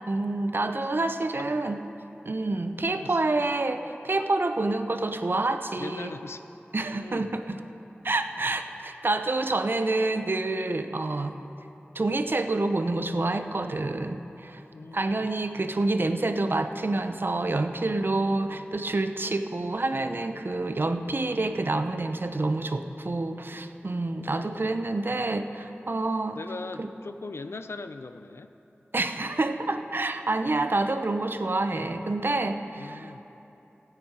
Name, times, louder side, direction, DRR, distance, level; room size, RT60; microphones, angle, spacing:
voice 1, 0.1-1.8 2.2-6.1 6.7-7.6 8.0-11.4 11.9-14.6 14.9-26.4 26.8-26.9 28.9-33.2, right 2 dB, 55° right, 8 dB, 0.7 m, -28 dB
voice 2, 5.8-6.4 6.9-7.4 14.7-15.3 24.2-24.8 26.3-28.5 32.8-33.2, left 3 dB, 80° left, 10 dB, 0.5 m, -40 dB
17.5 x 9.2 x 4.7 m, 2.9 s
wide cardioid pair, 60°, 4 cm